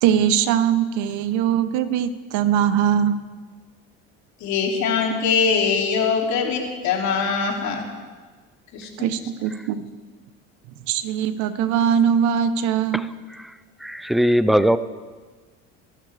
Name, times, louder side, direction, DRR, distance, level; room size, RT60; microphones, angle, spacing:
voice 1, 0.0-3.2 9.0-9.8 10.9-13.0, right 8 dB, 70° right, 11 dB, 1.1 m, -21 dB
voice 2, 4.4-7.8 8.7-8.9, left 5 dB, 60° left, 0 dB, 3.1 m, -22 dB
voice 3, 13.8-14.8, equal, ahead, 13 dB, 0.5 m, -19 dB
25.0 x 11.5 x 3.5 m, 1.4 s
supercardioid pair, 100°, 31 cm